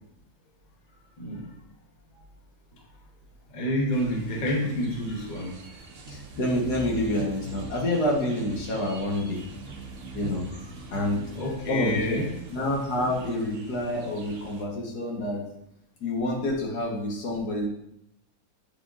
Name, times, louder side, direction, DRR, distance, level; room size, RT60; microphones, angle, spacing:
voice 1, 1.2-1.5 2.1-2.2 3.5-5.5 10.5-10.6 11.3-12.3, equal, 30° left, -2 dB, 0.9 m, -28 dB
sound 1, 3.9-14.6, right 3 dB, 55° right, 0.9 m, -42 dB
voice 2, 6.1-9.4 10.1-10.5 10.9-11.2 11.7-12.2 12.5-15.4 16.0-17.7, left 1 dB, 60° left, -2 dB, 1.6 m, -28 dB
9.0 x 4.3 x 2.4 m, 0.79 s
omnidirectional pair, 2.0 m